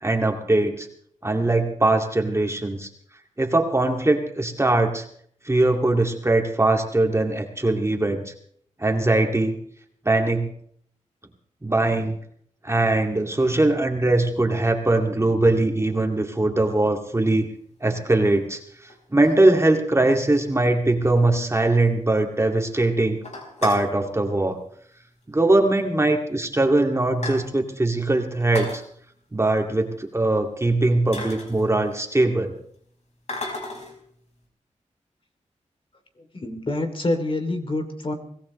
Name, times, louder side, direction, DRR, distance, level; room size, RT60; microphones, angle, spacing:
voice 1, 0.0-0.9 1.2-2.9 3.4-5.0 5.5-8.3 8.8-9.6 10.1-10.5 11.6-12.2 12.6-17.5 17.8-18.6 19.1-23.2 23.6-24.6 25.3-28.8 29.3-32.5, right 2 dB, 20° right, 3 dB, 2.2 m, -21 dB
sound 1, 17.0-17.1 17.9-18.0 18.9-19.9 20.3-20.4 20.6-20.7 21.1-21.2 21.5-21.6 22.0-22.4 22.7-22.8 23.1-23.9 25.0-25.3 25.6-25.7 26.4-26.5 26.8-27.8 28.3-28.8 30.5-30.6 31.1-32.1 33.3-34.0, left 2 dB, 65° left, 5.0 m, -36 dB
voice 2, 36.2-38.1, left 2 dB, 45° left, 5 dB, 2.8 m, -27 dB
23.5 x 17.5 x 3.2 m, 0.63 s
wide cardioid pair, 70°, 13 cm